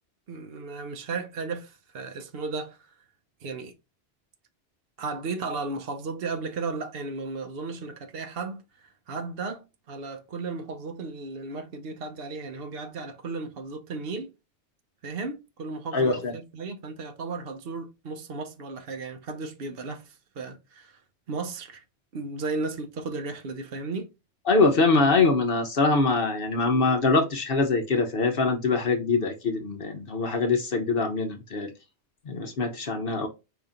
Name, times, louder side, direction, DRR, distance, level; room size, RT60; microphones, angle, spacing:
voice 1, 0.3-2.8 3.4-3.7 5.0-8.6 9.1-14.3 15.0-21.0 21.3-21.8 22.1-24.1, right 3 dB, 60° right, 1.0 m, -35 dB
voice 2, 15.9-16.3 24.5-31.7 32.3-33.3, left 3 dB, 60° left, 1.0 m, -23 dB
4.9 x 2.8 x 3.7 m
omnidirectional pair, 1.1 m